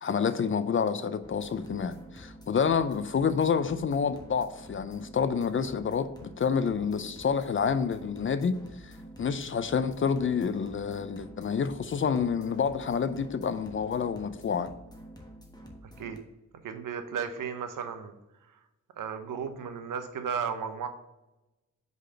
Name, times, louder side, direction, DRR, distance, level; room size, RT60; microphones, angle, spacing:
voice 1, 0.0-8.6 8.8-14.7, left 6 dB, 40° left, 0.5 m, -28 dB
sound 1, 1.2-16.2, right 1 dB, 10° left, 1.2 m, -49 dB
voice 2, 16.6-18.1 19.0-20.9, right 7 dB, 75° right, 0.8 m, -34 dB
4.9 x 4.0 x 5.5 m
cardioid pair, 70°, 32 cm